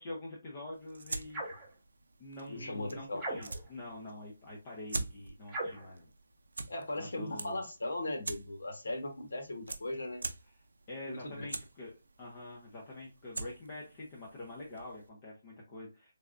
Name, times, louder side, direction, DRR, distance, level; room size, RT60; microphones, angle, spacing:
voice 1, 0.0-1.4 2.2-6.1 7.0-7.6 10.9-11.9 12.2-16.1, left 1 dB, 30° left, -3 dB, 0.8 m, -46 dB
sound 1, 0.7-15.1, right 3 dB, 80° right, 0.4 m, -46 dB
sound 2, 1.3-1.7 3.2-3.7 5.5-5.9, right 1 dB, 5° right, 1.1 m, -39 dB
voice 2, 2.5-3.2 6.7-10.2 11.0-11.4, left 1 dB, 80° left, 4 dB, 1.2 m, -38 dB
3.4 x 2.3 x 2.5 m, 0.27 s
hypercardioid pair, 165°, 0 cm